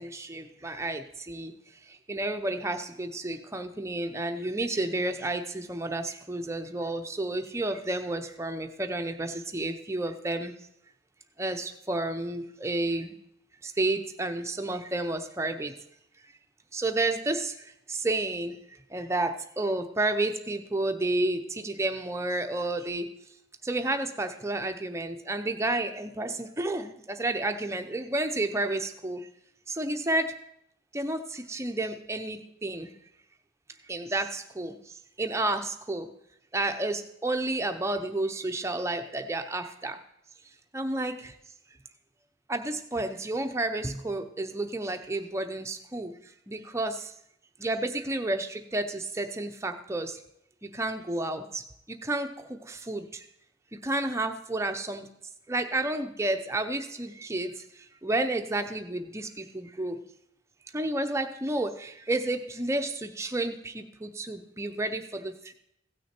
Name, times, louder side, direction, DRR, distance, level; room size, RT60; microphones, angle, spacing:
voice 1, 0.0-1.5 2.1-10.5 11.4-13.1 13.8-15.7 16.7-17.5 17.9-18.5 18.9-23.1 23.6-29.2 29.7-30.3 30.9-32.9 33.9-34.8 35.2-36.1 36.5-40.0 40.7-41.3 42.5-46.1 46.5-47.0 47.6-50.1 50.7-51.6 51.9-52.3 52.7-53.0 53.8-55.1 55.5-57.5 58.0-60.0 60.7-65.5, right 2 dB, 15° right, 6 dB, 0.6 m, -31 dB
16.0 x 6.2 x 4.4 m, 0.77 s
head